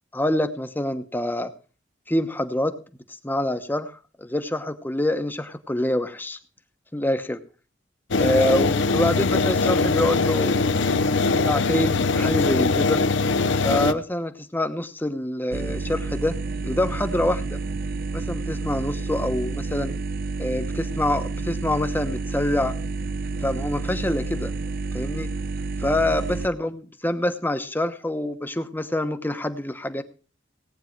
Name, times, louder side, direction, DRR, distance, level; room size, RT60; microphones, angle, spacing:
voice 1, 0.1-1.5 2.1-2.8 3.2-3.9 4.2-6.4 6.9-7.4 8.2-10.7 11.2-13.0 13.6-16.4 16.6-17.6 18.1-19.9 20.4-22.8 23.4-24.5 24.9-25.3 25.8-30.0, left 1 dB, 10° left, 8 dB, 1.0 m, -26 dB
sound 1, 8.1-13.9, left 3 dB, 65° left, 0.7 m, -21 dB
sound 2, 15.5-26.5, right 3 dB, 50° right, 0.7 m, -30 dB
18.0 x 9.1 x 4.5 m, 0.36 s
head